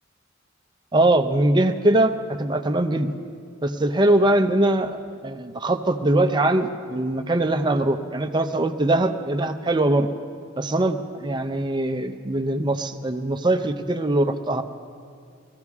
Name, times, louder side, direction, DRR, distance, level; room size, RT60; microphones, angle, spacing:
voice 1, 0.9-3.1 3.6-5.0 5.2-10.1 10.6-14.6, right 1 dB, 25° right, 7 dB, 0.6 m, -22 dB
22.0 x 14.5 x 3.6 m, 2.3 s
head